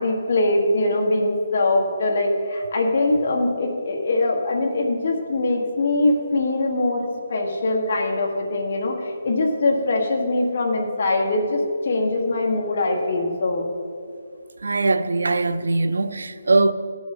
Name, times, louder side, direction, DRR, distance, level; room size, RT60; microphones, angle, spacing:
voice 1, 0.0-13.7, left 2 dB, 40° left, 1.5 m, -22 dB
voice 2, 14.6-16.7, right 3 dB, 85° right, 0.6 m, -21 dB
16.5 x 6.2 x 5.4 m
hypercardioid pair, 180°, 0 cm